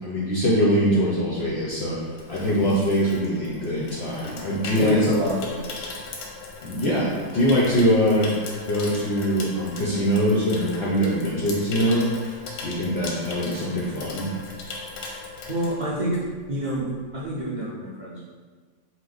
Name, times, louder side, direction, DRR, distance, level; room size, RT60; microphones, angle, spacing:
voice 1, 0.0-2.0 2.3-5.0 6.6-8.3 8.7-12.3 12.6-14.3, equal, 60° left, -6 dB, 0.6 m, -23 dB
Water tap faucet / Sink (filling or washing), 1.8-16.4 16.7-17.0, left 3 dB, 90° left, 1.3 m, -38 dB
voice 2, 4.8-5.8 15.5-16.2 16.5-18.2, right 1 dB, 70° right, -8 dB, 0.4 m, -28 dB
4.7 x 2.0 x 3.9 m, 1.5 s
omnidirectional pair, 1.8 m